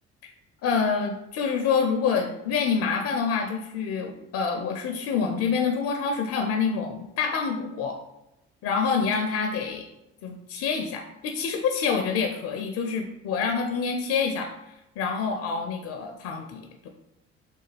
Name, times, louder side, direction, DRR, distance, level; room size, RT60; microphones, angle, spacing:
voice 1, 0.6-8.0 8.6-9.9 10.2-14.5 15.0-16.9, left 5 dB, 50° left, 4 dB, 0.5 m, -27 dB
3.2 x 2.1 x 3.2 m, 0.89 s
hypercardioid pair, 60°, 32 cm